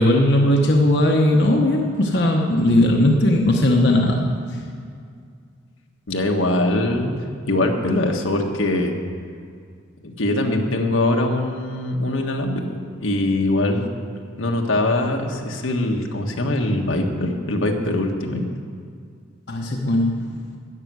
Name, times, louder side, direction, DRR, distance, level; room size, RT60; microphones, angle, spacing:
voice 1, 0.0-4.3 19.5-20.5, left 1 dB, 55° left, 0 dB, 1.0 m, -18 dB
voice 2, 6.1-7.1 7.4-8.9 10.0-12.6 13.0-13.9 14.4-18.4, left 1 dB, 85° left, 2 dB, 1.4 m, -22 dB
13.5 x 5.9 x 9.5 m, 2.2 s
head